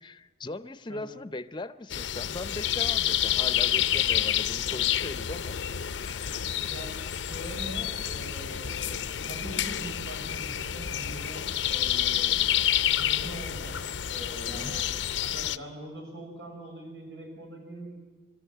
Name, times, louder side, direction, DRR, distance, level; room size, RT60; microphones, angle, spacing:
voice 1, 0.0-5.6 6.0-6.4 14.4-14.7, left 2 dB, 25° left, 13 dB, 0.6 m, -39 dB
sound 1, 1.9-15.6, left 11 dB, 85° left, 0.6 m, -29 dB
voice 2, 6.6-13.8 14.1-14.8 15.2-17.9, right 1 dB, 90° right, 2 dB, 6.6 m, -42 dB
24.5 x 13.5 x 9.1 m, 1.3 s
head